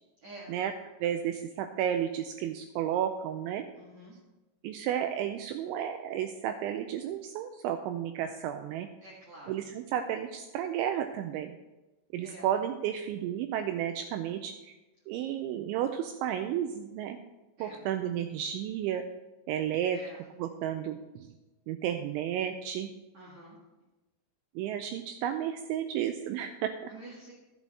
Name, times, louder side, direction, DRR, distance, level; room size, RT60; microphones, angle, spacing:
voice 1, 0.2-0.5 3.8-4.2 9.0-9.7 12.2-12.5 17.6-17.8 19.9-20.2 23.1-23.6 26.9-27.3, right 1 dB, 65° right, -5 dB, 1.7 m, -48 dB
voice 2, 1.0-3.7 4.6-8.9 9.5-11.5 12.1-14.7 15.1-17.2 17.6-19.0 19.5-20.0 20.4-21.3 21.7-22.9 24.6-26.9, right 10 dB, 85° right, 7 dB, 2.6 m, -32 dB
12.0 x 7.8 x 4.1 m, 1.1 s
omnidirectional pair, 5.8 m